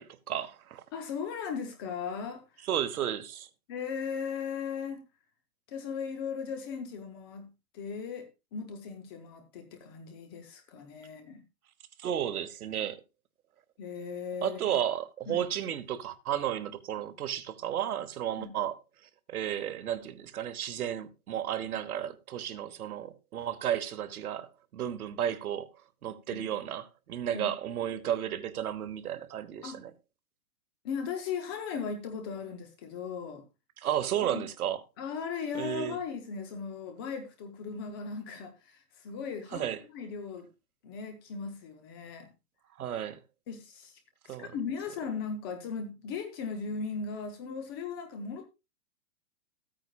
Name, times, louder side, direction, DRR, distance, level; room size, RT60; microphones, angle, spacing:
voice 1, 0.0-0.8 2.6-3.5 12.0-13.0 14.4-18.8 19.3-25.7 26.0-29.9 33.8-34.8 35.5-36.0 39.5-39.8 42.8-43.2 44.3-44.5, right 10 dB, 90° right, 1.1 m, -33 dB
voice 2, 0.9-2.7 3.7-5.0 5.7-11.4 13.8-14.8 15.3-15.5 18.4-18.5 26.3-26.6 27.3-27.5 29.6-29.8 30.8-33.4 34.2-34.4 35.0-39.7 39.9-40.5 40.8-42.3 43.5-44.0 44.2-48.4, left 6 dB, 15° left, 0.6 m, -37 dB
14.0 x 9.1 x 2.3 m
hypercardioid pair, 165°, 43 cm